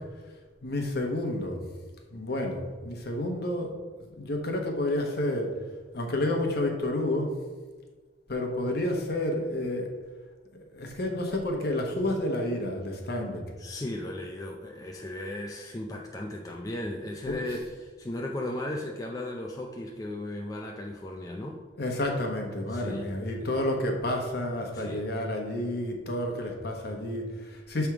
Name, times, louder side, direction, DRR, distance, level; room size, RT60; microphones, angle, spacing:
voice 1, 0.6-1.6 2.1-3.7 4.1-5.5 5.9-7.3 8.3-9.9 10.5-13.5 17.3-17.4 21.8-27.9, left 1 dB, 55° left, 2 dB, 1.1 m, -30 dB
voice 2, 13.6-21.6 22.7-23.6 24.7-25.1, left 1 dB, 20° left, 0 dB, 0.4 m, -36 dB
7.3 x 3.5 x 4.6 m, 1.4 s
head